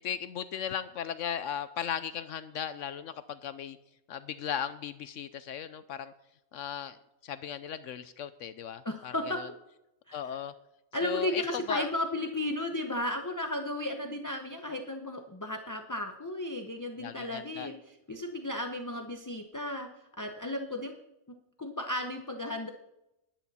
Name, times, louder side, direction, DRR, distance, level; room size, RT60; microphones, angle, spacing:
voice 1, 0.0-3.8 4.1-6.1 6.5-7.0 7.2-9.5 10.1-10.5 11.0-11.9 17.0-17.7, left 9 dB, 70° left, 13 dB, 0.9 m, -37 dB
voice 2, 8.8-9.4 10.1-10.4 10.9-19.9 20.2-20.9 21.6-22.7, left 1 dB, 20° left, 5 dB, 0.6 m, -34 dB
13.0 x 10.5 x 4.2 m, 0.87 s
omnidirectional pair, 1.4 m